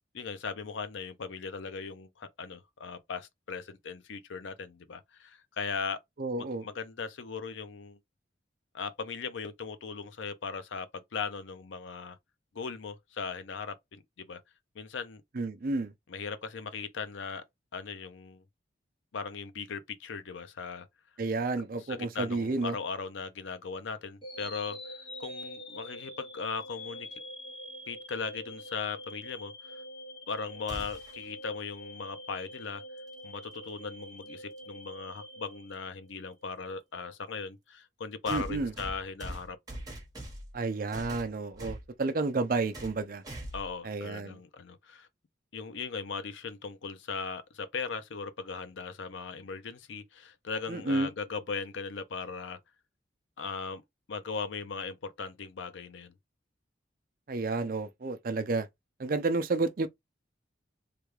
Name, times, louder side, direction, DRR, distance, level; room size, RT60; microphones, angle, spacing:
voice 1, 0.1-6.0 6.4-8.0 8.7-12.2 12.5-14.4 14.7-15.2 16.1-17.4 17.7-18.4 19.1-20.9 21.9-24.8 25.2-27.2 27.9-29.8 30.3-32.8 33.2-39.6 43.5-45.1 45.5-52.6 53.4-53.8 54.1-56.1, left 5 dB, 85° left, 0.6 m, -38 dB
voice 2, 6.2-6.6 15.3-15.9 21.2-22.8 38.3-38.7 40.5-43.2 43.8-44.4 50.7-51.1 57.3-58.7 59.0-59.9, right 3 dB, 50° right, 0.5 m, -31 dB
sound 1, 24.2-36.3, left 1 dB, 30° left, 1.0 m, -45 dB
sound 2, 30.7-31.2 33.4-33.5 34.6-34.7 38.3-40.6 40.9-41.9 42.7-43.0 43.2-43.7, right 1 dB, 20° right, 1.1 m, -42 dB
3.3 x 2.3 x 3.2 m
head